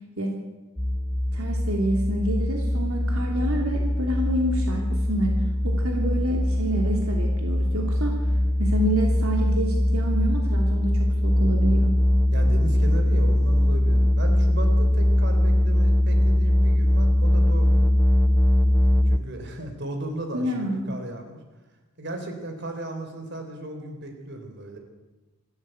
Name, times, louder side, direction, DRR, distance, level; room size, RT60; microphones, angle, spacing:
sound 1, 0.8-19.2, left 1 dB, 5° left, 0.6 m, -21 dB
voice 1, 1.3-5.3 5.6-8.2 8.6-11.9 20.3-20.8, right 1 dB, 70° right, 1 dB, 2.9 m, -28 dB
voice 2, 12.3-18.0 19.1-21.4 22.0-24.8, right 1 dB, 50° right, 5 dB, 4.0 m, -36 dB
26.5 x 13.5 x 7.9 m, 1.2 s
head